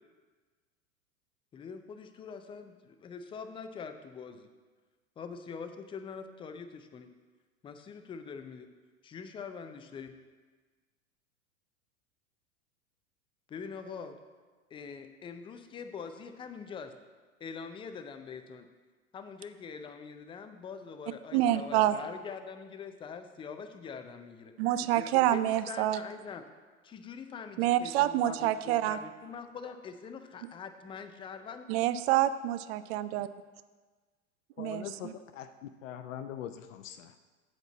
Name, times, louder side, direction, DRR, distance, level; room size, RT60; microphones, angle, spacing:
voice 1, 1.5-4.5 5.2-7.1 7.6-8.7 9.0-10.1 13.5-14.2 14.7-16.9 17.4-18.7 19.1-24.5 25.0-26.4 26.8-31.7, left 5 dB, 15° left, 8 dB, 0.4 m, -44 dB
voice 2, 21.3-22.0 24.6-26.0 27.6-29.0 31.7-33.3 34.6-35.1, right 13 dB, 50° right, 14 dB, 0.5 m, -27 dB
voice 3, 34.6-35.5 35.8-37.2, left 10 dB, 65° left, 9 dB, 0.6 m, -42 dB
7.8 x 4.4 x 7.1 m, 1.4 s
hypercardioid pair, 90°, 42 cm